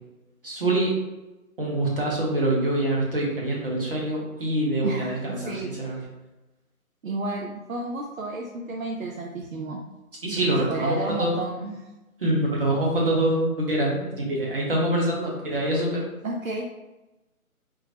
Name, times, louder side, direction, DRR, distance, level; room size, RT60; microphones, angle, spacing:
voice 1, 0.4-0.9 1.6-6.0 10.2-11.3 12.2-16.0, right 1 dB, 40° right, -3 dB, 0.9 m, -25 dB
voice 2, 4.8-6.0 7.0-9.8 10.6-11.8 16.2-16.7, right 2 dB, 65° right, 0 dB, 0.5 m, -32 dB
3.7 x 2.0 x 2.8 m, 1.0 s
figure-of-eight pair, 165°, 43 cm